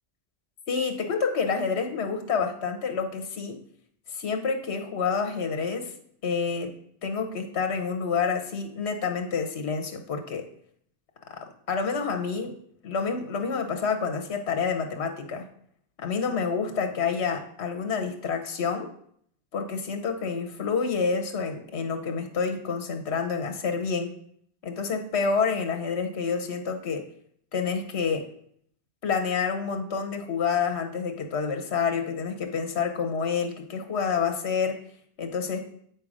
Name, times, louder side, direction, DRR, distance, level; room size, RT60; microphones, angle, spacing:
voice 1, 0.7-3.6 4.1-5.9 6.2-6.7 7.0-10.5 11.3-12.5 12.8-15.5 16.0-18.9 19.5-24.1 24.6-27.1 27.5-28.3 29.0-34.8 35.2-35.6, left 5 dB, 75° left, 5 dB, 1.2 m, -28 dB
8.4 x 5.7 x 4.9 m, 0.66 s
omnidirectional pair, 1.1 m